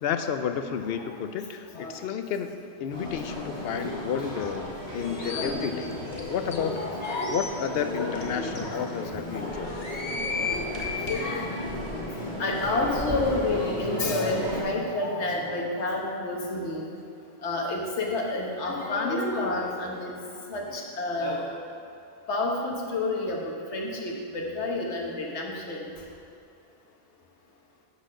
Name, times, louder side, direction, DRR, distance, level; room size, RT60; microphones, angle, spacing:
voice 1, 0.0-5.9 6.3-6.8 7.3-9.8, left 7 dB, 70° left, 8 dB, 0.8 m, -31 dB
sound 1, 2.9-14.6, left 1 dB, 70° right, 2.3 m, -35 dB
sound 2, 5.0-5.5 6.1-6.2 6.5-6.6 7.0-7.4 8.2-8.3 8.6-8.7 9.6-11.2, left 5 dB, 45° left, 1.3 m, -34 dB
voice 2, 5.3-5.9 6.5-7.4 7.9-9.5 10.5-11.5 12.4-16.9 17.4-20.2 20.5-21.5 22.3-25.9, left 2 dB, 85° left, 0 dB, 1.4 m, -30 dB
Drum, 8.4-16.7, equal, 35° right, 2.5 m, -40 dB
7.2 x 6.3 x 6.4 m, 2.5 s
omnidirectional pair, 1.1 m